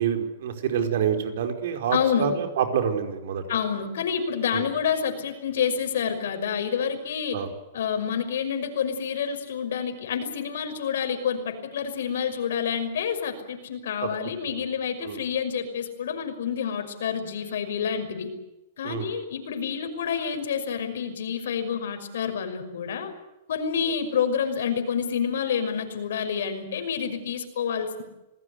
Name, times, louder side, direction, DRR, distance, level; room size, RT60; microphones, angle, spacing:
voice 1, 0.0-3.4 4.5-4.6 7.3-7.5 14.0-14.1 14.4-14.6 15.0-15.2 18.8-19.1, right 8 dB, 65° right, 6 dB, 4.9 m, -27 dB
voice 2, 1.9-2.3 3.5-7.4 7.7-18.3 18.8-23.1 23.5-28.0, left 7 dB, 75° left, 7 dB, 5.8 m, -28 dB
27.5 x 18.5 x 8.1 m, 0.95 s
hypercardioid pair, 155°, 0 cm